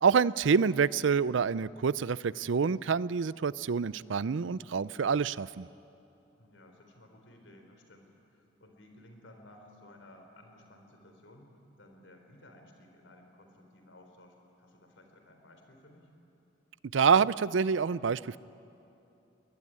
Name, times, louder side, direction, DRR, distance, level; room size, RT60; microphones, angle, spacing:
voice 1, 0.0-5.7 16.9-18.4, right 6 dB, 80° right, 19 dB, 0.5 m, -27 dB
voice 2, 6.4-16.1, left 1 dB, 75° left, 4 dB, 3.7 m, -56 dB
23.0 x 20.0 x 9.8 m, 2.8 s
head